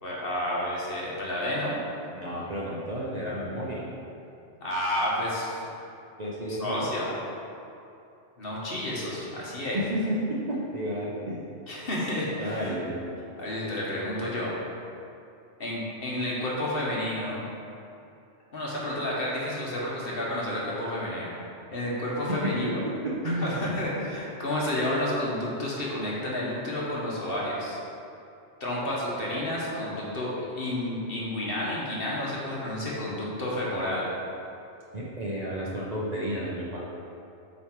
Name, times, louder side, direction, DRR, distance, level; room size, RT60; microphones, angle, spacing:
voice 1, 0.0-1.8 4.6-5.7 6.5-7.1 8.4-9.8 11.7-12.8 13.4-14.5 15.6-17.4 18.5-21.3 21.7-22.8 23.2-27.8 28.6-34.1, left 1 dB, 50° left, -5 dB, 1.3 m, -30 dB
voice 2, 2.1-3.8 6.2-6.8 9.7-11.5 12.4-13.0 22.3-23.6 34.9-36.8, equal, 40° right, -5 dB, 0.7 m, -31 dB
8.1 x 3.2 x 4.5 m, 2.7 s
omnidirectional pair, 1.3 m